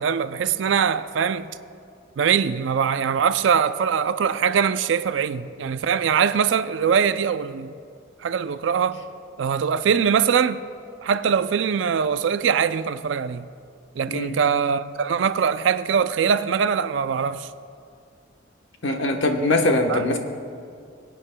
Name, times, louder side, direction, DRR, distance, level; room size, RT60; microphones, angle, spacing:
voice 1, 0.0-1.5 2.2-7.7 8.2-9.0 9.4-10.6 11.0-13.5 14.0-17.5 19.9-20.0, right 7 dB, 75° right, 0.4 m, -22 dB
voice 2, 18.8-20.2, left 2 dB, 75° left, 1.0 m, -22 dB
24.0 x 9.0 x 2.2 m
head